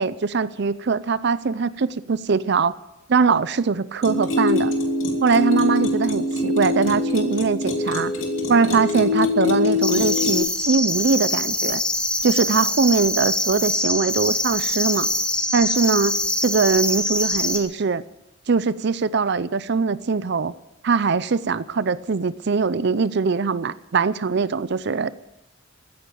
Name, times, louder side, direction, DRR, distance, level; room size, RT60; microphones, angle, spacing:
voice 1, 0.0-2.7 3.1-4.7 5.2-8.1 8.5-11.8 12.2-15.1 15.5-16.1 16.4-18.0 18.5-20.5 20.8-25.1, right 4 dB, 55° right, 16 dB, 0.5 m, -21 dB
sound 1, 4.0-10.4, left 2 dB, 70° left, 2.8 m, -23 dB
sound 2, 9.8-17.6, left 1 dB, 5° left, 1.6 m, -24 dB
15.5 x 10.0 x 7.7 m, 0.93 s
head